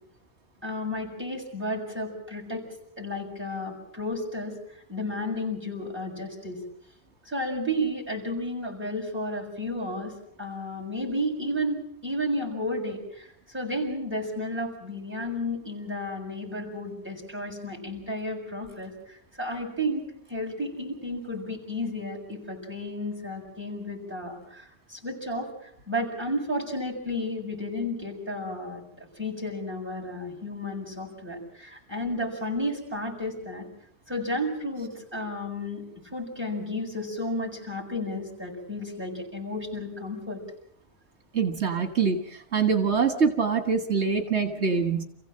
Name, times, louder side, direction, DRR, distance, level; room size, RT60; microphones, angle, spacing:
voice 1, 0.6-2.7 3.0-4.6 4.9-6.6 7.3-10.1 10.4-13.3 13.5-33.7 34.1-35.8 36.1-40.4, left 1 dB, 10° right, -3 dB, 6.9 m, -32 dB
voice 2, 41.3-45.0, right 5 dB, 80° right, 5 dB, 2.0 m, -24 dB
28.5 x 16.0 x 7.7 m, 0.71 s
omnidirectional pair, 1.1 m